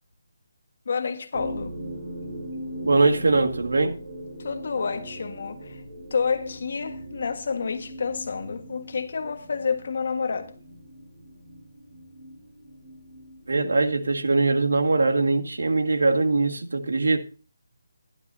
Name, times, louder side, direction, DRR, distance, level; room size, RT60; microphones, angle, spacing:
voice 1, 0.8-1.7 4.4-5.8 6.1-10.6, left 5 dB, 50° left, 1.5 m, -29 dB
sound 1, 1.3-16.2, equal, 25° right, 7.5 m, -40 dB
voice 2, 2.8-4.0 13.5-17.2, right 3 dB, 80° right, 1.8 m, -22 dB
13.5 x 12.0 x 2.7 m
hypercardioid pair, 170°, 0 cm